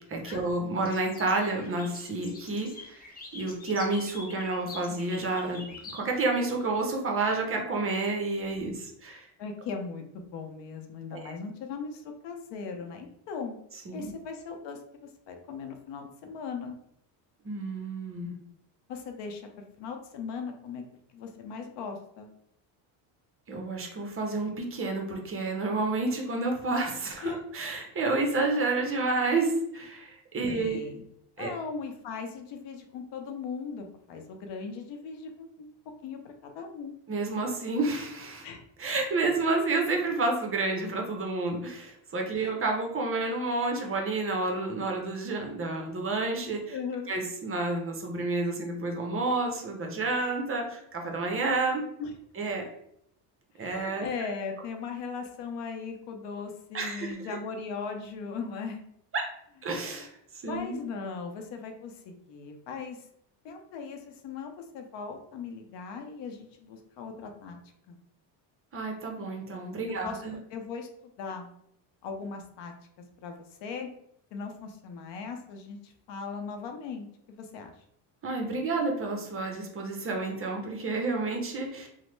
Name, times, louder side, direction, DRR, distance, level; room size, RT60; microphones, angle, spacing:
voice 1, 0.1-3.1 3.3-9.3 11.1-11.3 13.9-14.1 17.4-18.3 23.5-30.8 31.4-31.5 37.1-38.4 38.8-46.8 47.1-51.9 52.4-52.7 53.6-54.1 56.7-57.2 59.1-59.2 59.6-60.8 68.7-70.4 78.2-81.9, right 3 dB, 30° right, 2 dB, 0.6 m, -30 dB
sound 1, 0.8-6.8, left 3 dB, 20° left, 0.4 m, -46 dB
voice 2, 9.4-13.6 13.9-16.7 18.9-20.8 21.1-22.3 27.2-27.4 30.4-31.0 31.4-35.7 36.0-36.9 38.4-38.6 42.3-42.5 46.4-47.1 52.0-52.1 53.6-58.8 59.7-60.1 60.4-63.1 63.4-67.6 67.9-68.0 70.0-70.9 71.2-71.5 72.0-72.7 73.2-73.9 74.3-77.1 77.4-77.8, left 5 dB, 65° left, 4 dB, 0.7 m, -39 dB
3.0 x 2.1 x 3.1 m, 0.74 s
cardioid pair, 110°, 47 cm